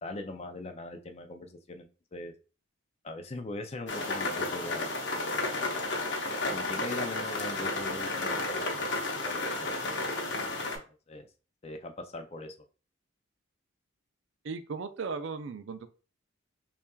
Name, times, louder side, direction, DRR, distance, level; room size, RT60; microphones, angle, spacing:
voice 1, 0.0-2.3 3.0-5.4 6.5-8.8 9.2-10.1 10.7-11.3 11.6-12.5, left 2 dB, 30° left, 6 dB, 0.4 m, -41 dB
sound 1, 3.9-10.8, left 2 dB, 60° left, 0.8 m, -32 dB
voice 2, 14.4-15.9, right 4 dB, 65° right, 10 dB, 0.4 m, -36 dB
5.5 x 2.4 x 2.3 m, 0.36 s
head